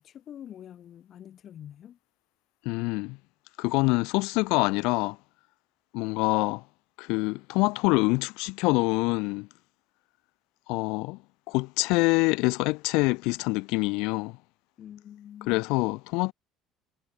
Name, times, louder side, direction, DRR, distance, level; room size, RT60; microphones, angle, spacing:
voice 1, 0.0-2.0 14.8-15.6, left 10 dB, 40° left, 5.3 m, -46 dB
voice 2, 2.6-3.2 3.6-5.2 5.9-6.6 7.0-9.5 10.7-11.2 11.5-14.4 15.5-16.3, left 26 dB, 80° left, 0.6 m, -25 dB
cardioid pair, 145°, 0 cm